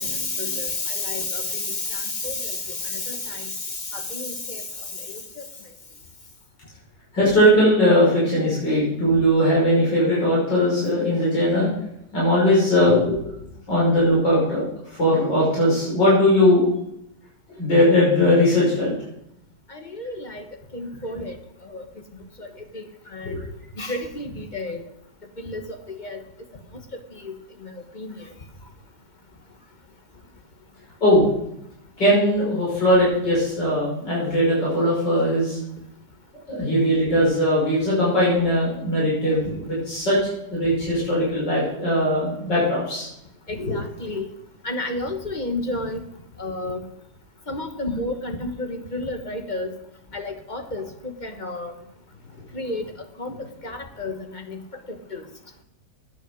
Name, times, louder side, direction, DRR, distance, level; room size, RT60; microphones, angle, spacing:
voice 1, 0.0-3.5 3.9-4.6 19.7-20.4 20.7-21.3 21.7-21.8 22.4-22.5 22.7-22.8 23.1-23.3 23.8-24.8 25.4-25.6 26.0-26.2 27.2-27.3 28.0-28.1 43.7-44.3 44.6-46.0 46.4-46.8 47.5-49.7 50.1-50.9 51.2-51.7 52.5-52.8 53.2-53.3 53.6-54.1 54.5-54.6 55.1-55.2, left 2 dB, 30° left, 6 dB, 1.3 m, -30 dB
voice 2, 7.1-11.7 12.1-13.4 13.7-14.6 15.0-16.6 17.6-18.9 23.3-23.4 31.0-31.3 32.0-35.6 36.5-40.2 40.5-43.1 43.7-43.8, equal, 80° left, -7 dB, 6.4 m, -19 dB
12.0 x 8.9 x 6.3 m, 0.80 s
omnidirectional pair, 1.9 m